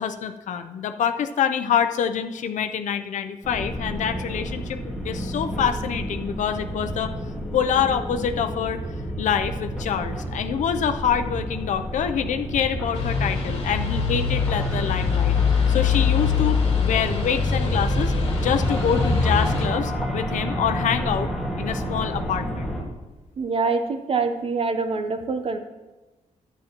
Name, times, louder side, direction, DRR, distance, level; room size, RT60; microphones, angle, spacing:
voice 1, 0.0-7.1 7.5-8.8 9.2-15.4 15.7-18.1 18.4-21.3 21.6-22.7, left 8 dB, 80° left, 8 dB, 0.5 m, -26 dB
sound 1, 3.4-22.8, equal, ahead, 1.7 m, -30 dB
sound 2, 12.9-19.7, left 5 dB, 50° left, 1.9 m, -23 dB
voice 2, 23.4-25.6, right 4 dB, 50° right, 8 dB, 0.7 m, -25 dB
13.0 x 9.1 x 2.9 m, 1.1 s
wide cardioid pair, 145°, 12 cm